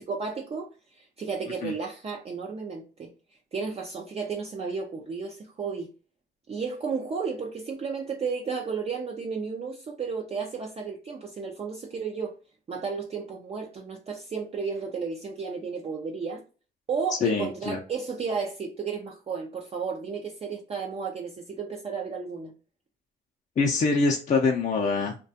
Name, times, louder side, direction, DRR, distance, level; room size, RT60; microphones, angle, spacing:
voice 1, 0.0-3.1 3.5-5.9 6.5-12.3 12.7-16.4 16.9-22.5, right 5 dB, 30° right, 0.4 m, -33 dB
voice 2, 17.1-17.8 23.6-25.2, left 4 dB, 40° left, 0.5 m, -24 dB
2.3 x 2.2 x 2.6 m
cardioid pair, 90°, 20 cm